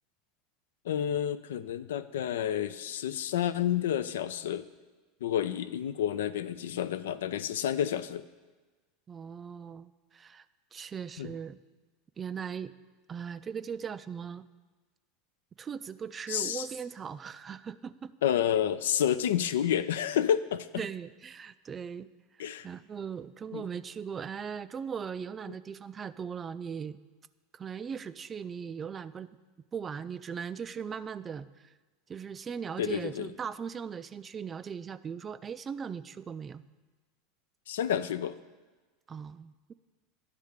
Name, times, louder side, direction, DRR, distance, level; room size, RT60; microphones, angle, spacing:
voice 1, 0.9-4.6 5.2-8.2 11.2-11.3 16.3-16.7 18.2-20.7 22.4-22.7 23.5-23.6 32.8-33.3 37.7-38.4, left 10 dB, 75° left, 14 dB, 0.3 m, -29 dB
voice 2, 9.1-10.4 10.7-11.6 12.2-12.7 13.1-14.5 15.6-18.2 20.8-22.1 22.6-27.0 27.5-29.4 29.7-31.7 32.1-36.6 39.1-39.7, right 7 dB, 30° right, 14 dB, 0.3 m, -39 dB
10.5 x 3.6 x 6.5 m, 1.3 s
hypercardioid pair, 85°, 0 cm